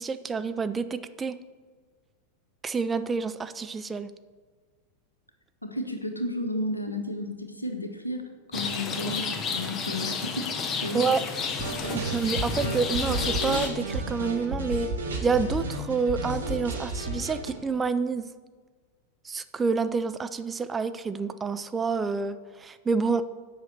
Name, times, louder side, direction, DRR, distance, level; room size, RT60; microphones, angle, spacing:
voice 1, 0.0-1.4 2.6-4.1 10.9-11.2 11.9-14.9 15.2-18.3 19.2-23.2, right 5 dB, 15° right, 11 dB, 0.4 m, -28 dB
voice 2, 5.6-10.5 10.8-11.1, left 1 dB, 85° left, 6 dB, 1.0 m, -33 dB
Rain, 8.5-13.7, left 5 dB, 30° left, 0.9 m, -31 dB
sound 1, 11.6-17.5, right 2 dB, 70° right, 1.5 m, -32 dB
8.1 x 5.7 x 6.6 m, 1.5 s
figure-of-eight pair, 90°, 0 cm